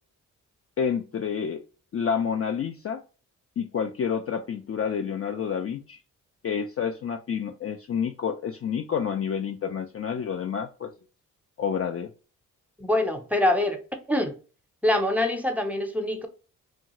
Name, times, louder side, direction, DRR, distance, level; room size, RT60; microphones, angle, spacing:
voice 1, 0.8-1.6 1.9-3.0 3.6-6.0 6.4-10.9 11.6-12.1, left 7 dB, 40° left, 0.4 m, -29 dB
voice 2, 12.8-13.8 14.1-14.4 14.8-16.3, left 1 dB, 5° right, 0.7 m, -24 dB
3.0 x 2.3 x 2.9 m
supercardioid pair, 45°, 38 cm